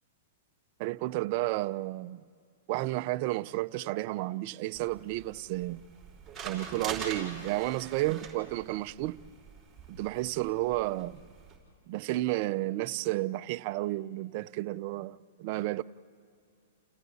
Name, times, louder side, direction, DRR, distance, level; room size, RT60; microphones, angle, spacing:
voice 1, 0.8-2.2 2.7-5.8 6.4-9.2 9.9-11.2 11.9-15.8, right 17 dB, 45° right, 0.5 m, -32 dB
sound 1, 4.7-11.6, right 5 dB, 10° right, 5.4 m, -44 dB
29.5 x 29.5 x 4.2 m
hypercardioid pair, 140°, 0 cm